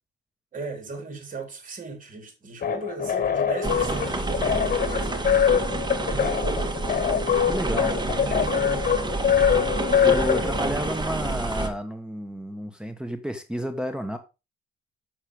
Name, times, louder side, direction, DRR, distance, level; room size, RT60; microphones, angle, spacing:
voice 1, 0.5-5.3 6.1-6.7 7.8-9.0, right 4 dB, 40° right, 4.1 m, -37 dB
sound 1, 2.6-10.9, left 8 dB, 45° left, 1.7 m, -24 dB
sound 2, 3.6-11.7, right 2 dB, 20° right, 1.8 m, -28 dB
voice 2, 7.5-7.9 10.0-14.2, equal, 5° right, 1.3 m, -31 dB
7.4 x 6.8 x 4.9 m
cardioid pair, 90°, 20 cm